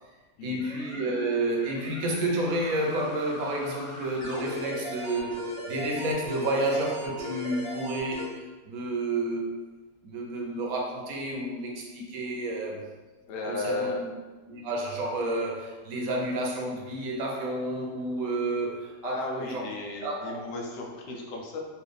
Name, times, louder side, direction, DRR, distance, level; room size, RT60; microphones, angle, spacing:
voice 1, 0.4-9.5 10.0-12.9 13.4-14.1 14.5-19.6 20.0-20.3, right 1 dB, 60° right, -1 dB, 1.1 m, -30 dB
sound 1, 0.6-8.3, equal, 50° left, 1.3 m, -39 dB
voice 2, 13.3-14.1 19.0-21.6, left 2 dB, 75° left, 0 dB, 1.3 m, -34 dB
4.4 x 2.7 x 3.3 m, 1.2 s
omnidirectional pair, 1.9 m